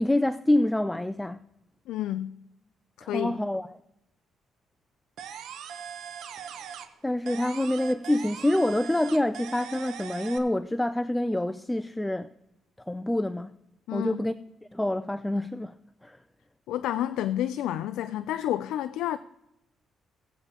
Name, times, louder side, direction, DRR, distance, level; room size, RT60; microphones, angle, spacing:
voice 1, 0.0-1.4 3.0-3.8 7.0-12.3 12.9-13.5 13.9-14.3 14.7-15.7 16.0-16.2, left 1 dB, 10° left, 0.3 m, -26 dB
voice 2, 1.9-2.4 3.1-3.3 13.9-14.2 16.7-19.2, left 12 dB, 85° left, 0.3 m, -30 dB
sound 1, 5.2-7.0 7.3-10.4, right 8 dB, 75° right, 0.9 m, -40 dB
17.5 x 8.0 x 2.9 m
cardioid pair, 95°, 0 cm